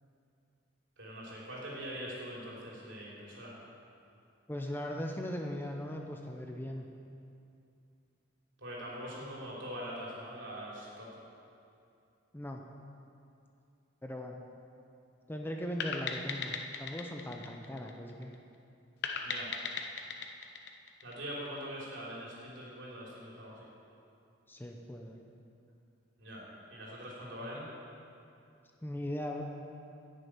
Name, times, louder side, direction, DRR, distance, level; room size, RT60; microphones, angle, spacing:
voice 1, 1.0-3.5 8.6-11.1 19.2-19.5 21.0-23.7 26.2-27.6, equal, 70° right, -5 dB, 3.4 m, -43 dB
voice 2, 4.5-6.9 12.3-12.6 14.0-14.4 15.3-18.3 24.5-25.2 28.8-29.4, equal, 10° left, 1 dB, 0.7 m, -39 dB
sound 1, 15.8-18.3 19.0-21.6, left 5 dB, 60° left, 0.8 m, -38 dB
10.5 x 6.7 x 9.0 m, 2.5 s
head